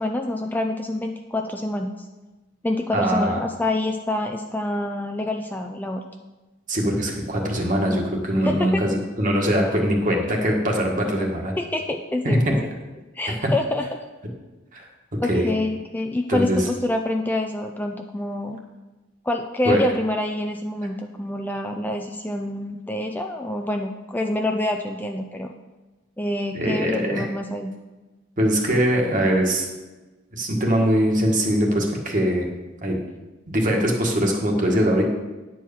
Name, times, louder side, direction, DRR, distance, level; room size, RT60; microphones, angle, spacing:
voice 1, 0.0-1.9 2.6-6.0 8.4-8.8 11.6-12.7 13.1-13.9 15.2-18.6 19.2-25.5 26.2-27.7, left 1 dB, 10° left, 3 dB, 0.4 m, -26 dB
voice 2, 2.9-3.4 6.7-11.5 12.2-12.5 14.7-14.8 15.2-15.5 16.3-16.6 19.6-19.8 26.5-27.3 28.4-29.6 30.3-32.5 32.8-32.9 33.5-35.0, equal, 45° right, 0 dB, 1.7 m, -22 dB
9.9 x 4.6 x 7.1 m, 1.2 s
head